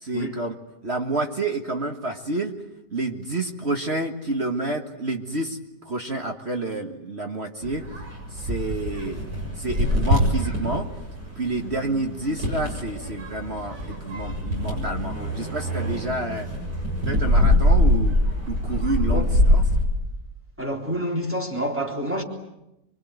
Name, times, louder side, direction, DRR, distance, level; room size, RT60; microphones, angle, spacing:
voice 1, 0.0-0.5 0.8-2.6 2.9-5.6 5.9-7.9 8.3-9.2 9.6-10.9 11.4-16.5 17.1-18.2 18.5-19.6, right 2 dB, 40° right, 1.8 m, -29 dB
sound 1, 7.6-19.8, left 1 dB, 75° right, 7.7 m, -24 dB
voice 2, 20.6-22.2, equal, 5° right, 3.7 m, -28 dB
25.5 x 23.0 x 9.4 m
omnidirectional pair, 1.8 m